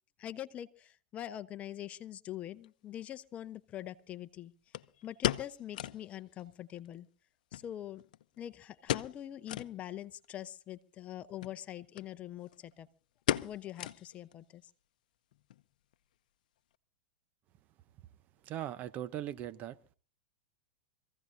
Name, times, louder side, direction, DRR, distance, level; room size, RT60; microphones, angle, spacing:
voice 1, 0.2-4.5 5.0-7.1 7.5-8.0 8.4-12.9 13.4-14.6, left 12 dB, 30° left, 0.8 m, -44 dB
sound 1, 2.6-2.7 4.7-6.1 6.4-6.5 6.8-6.9 7.5-8.4 8.8-9.2 9.5-9.7 10.2-10.3 11.3-11.6 12.0-12.1 12.4-12.7 13.3-14.3 14.6-14.7 15.3-15.6 15.9-16.0, left 13 dB, 70° left, 0.7 m, -35 dB
voice 2, 18.4-19.8, right 12 dB, 35° right, 0.8 m, -39 dB
25.0 x 15.5 x 2.7 m
hypercardioid pair, 120°, 5 cm